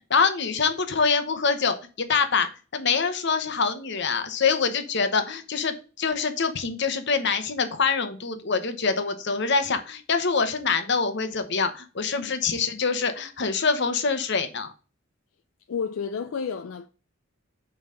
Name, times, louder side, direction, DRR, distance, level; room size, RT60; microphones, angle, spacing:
voice 1, 0.0-14.7, left 5 dB, 60° left, 0.9 m, -25 dB
voice 2, 15.7-16.9, left 6 dB, 85° left, 0.4 m, -31 dB
5.6 x 4.0 x 4.9 m
head